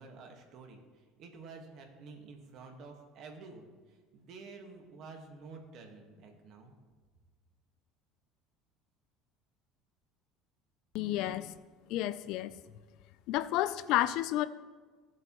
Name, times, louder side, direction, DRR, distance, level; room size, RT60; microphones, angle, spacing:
voice 1, 0.0-6.7 11.2-11.4, right 4 dB, 50° right, 3 dB, 1.5 m, -50 dB
voice 2, 10.9-11.5 11.9-12.5 13.3-14.5, left 14 dB, 60° left, 15 dB, 0.4 m, -30 dB
15.5 x 7.7 x 3.0 m, 1.4 s
cardioid pair, 155°, 0 cm